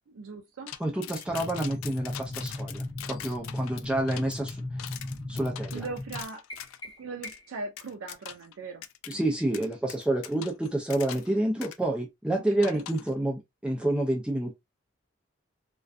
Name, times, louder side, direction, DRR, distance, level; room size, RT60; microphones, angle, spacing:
voice 1, 0.1-0.7 1.1-1.4 5.7-6.4 7.0-8.8 12.6-12.9, right 3 dB, 85° right, 0.4 m, -39 dB
sound 1, 0.7-6.8 7.2-7.4 7.8-8.5 8.8-9.1 9.5-11.3 11.6-11.8 12.6-13.1, left 11 dB, 90° left, 0.3 m, -42 dB
voice 2, 0.8-4.6 5.3-5.8 9.1-14.5, right 1 dB, 5° right, 0.4 m, -29 dB
sound 2, 1.2-6.2, left 2 dB, 40° right, 0.9 m, -37 dB
sound 3, 6.5-7.7, left 1 dB, 20° left, 1.2 m, -45 dB
2.5 x 2.2 x 2.4 m
head